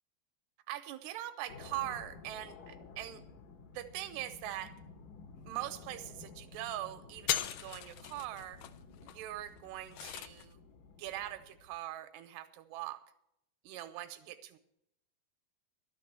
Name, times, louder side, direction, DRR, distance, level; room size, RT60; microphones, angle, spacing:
voice 1, 0.7-3.2 3.7-4.7 5.5-8.6 9.0-10.6 11.0-13.0 13.6-14.6, right 13 dB, 85° right, 10 dB, 2.8 m, -42 dB
sound 1, 1.5-11.9, left 4 dB, 65° left, 2.3 m, -54 dB
sound 2, 5.4-5.5 5.7-6.1 6.5-6.8 7.1-10.5, left 12 dB, 80° left, 2.1 m, -39 dB
12.5 x 6.8 x 8.3 m, 0.78 s
omnidirectional pair, 4.8 m